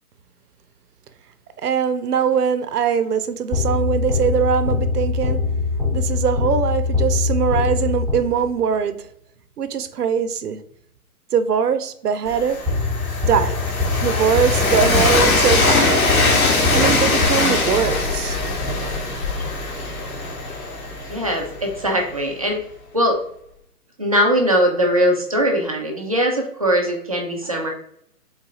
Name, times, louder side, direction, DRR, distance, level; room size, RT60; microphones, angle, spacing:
voice 1, 1.6-5.4 5.9-9.0 9.6-10.6 11.3-12.6 13.2-13.6 14.0-16.0 16.6-18.4, right 7 dB, 80° right, 0.6 m, -21 dB
sound 1, 3.5-8.6 12.7-17.9, left 4 dB, ahead, 1.0 m, -23 dB
Train, 12.3-22.1, left 2 dB, 65° left, 1.3 m, -21 dB
voice 2, 21.1-22.6 22.9-23.2 24.0-27.7, equal, 25° right, 0.4 m, -20 dB
3.7 x 2.4 x 4.1 m
hypercardioid pair, 145°, 46 cm